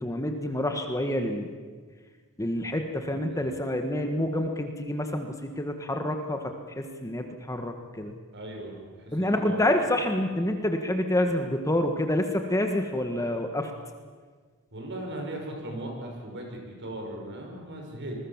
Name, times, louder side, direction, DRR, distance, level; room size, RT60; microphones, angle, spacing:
voice 1, 0.0-1.5 2.4-5.3 5.6-6.4 6.8-8.1 9.1-13.7, left 1 dB, 15° left, 5 dB, 1.6 m, -27 dB
voice 2, 3.1-3.6 8.3-9.7 14.7-18.2, right 1 dB, 55° right, 2 dB, 6.1 m, -38 dB
27.0 x 21.0 x 7.4 m, 1.5 s
head